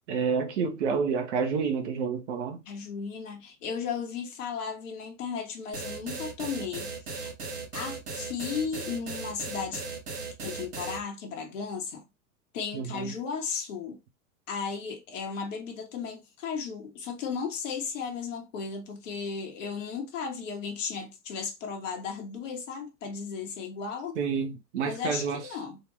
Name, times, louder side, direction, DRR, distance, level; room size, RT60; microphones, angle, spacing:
voice 1, 0.1-2.6 12.7-13.1 24.2-25.4, right 6 dB, 45° right, 1.0 m, -29 dB
voice 2, 2.7-7.3 7.7-9.8 10.4-12.0 12.5-14.0 14.5-24.2 24.8-25.8, left 6 dB, 50° left, 1.4 m, -35 dB
sound 1, 5.7-11.0, right 4 dB, 75° right, 1.3 m, -37 dB
4.2 x 2.6 x 3.2 m
figure-of-eight pair, 100°, 47 cm